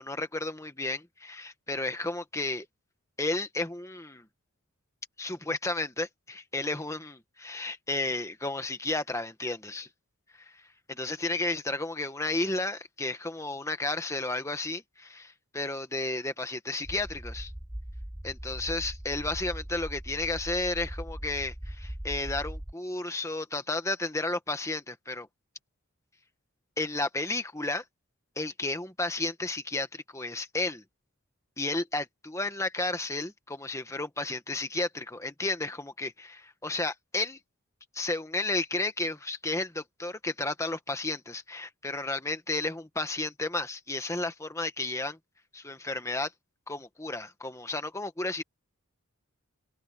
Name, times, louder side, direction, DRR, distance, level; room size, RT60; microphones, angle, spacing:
voice 1, 0.0-2.7 3.2-4.2 5.2-9.9 10.9-17.5 18.2-25.3 26.8-27.8 28.4-30.8 31.6-37.4 37.9-45.2 45.5-46.3 46.7-48.4, left 2 dB, 15° left, 1.4 m, -32 dB
sound 1, 16.8-22.7, equal, 5° right, 0.3 m, -40 dB
open air
head